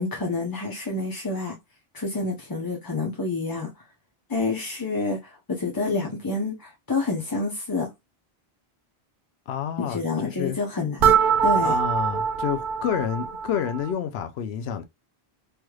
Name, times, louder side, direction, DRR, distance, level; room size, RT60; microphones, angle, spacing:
voice 1, 0.0-1.5 1.9-3.7 4.3-7.9 9.8-11.2 11.4-11.7, left 3 dB, 25° left, 0.5 m, -28 dB
voice 2, 9.5-10.6 11.6-14.8, left 8 dB, 85° left, 0.8 m, -29 dB
sound 1, 11.0-13.9, right 7 dB, 60° right, 0.6 m, -23 dB
3.4 x 3.1 x 2.2 m
omnidirectional pair, 1.0 m